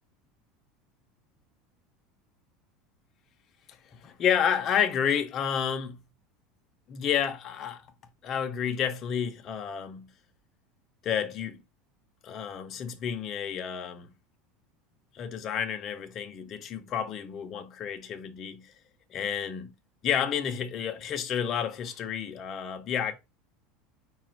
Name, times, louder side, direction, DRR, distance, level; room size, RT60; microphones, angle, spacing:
voice 1, 3.7-6.0 6.9-7.9 8.2-10.1 11.0-11.6 12.2-14.1 15.1-18.7 19.1-19.7 20.0-23.1, left 8 dB, 25° left, 0.6 m, -30 dB
4.9 x 2.3 x 4.4 m
cardioid pair, 175°, 0 cm